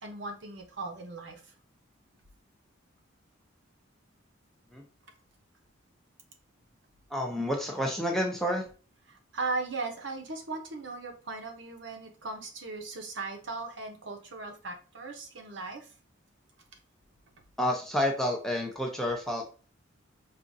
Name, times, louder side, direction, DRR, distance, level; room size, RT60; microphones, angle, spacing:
voice 1, 0.0-1.5 9.1-15.9, right 3 dB, 60° right, 4 dB, 0.7 m, -38 dB
voice 2, 7.1-8.6 17.6-19.6, equal, ahead, 0 dB, 0.5 m, -29 dB
4.8 x 2.4 x 2.6 m, 0.36 s
head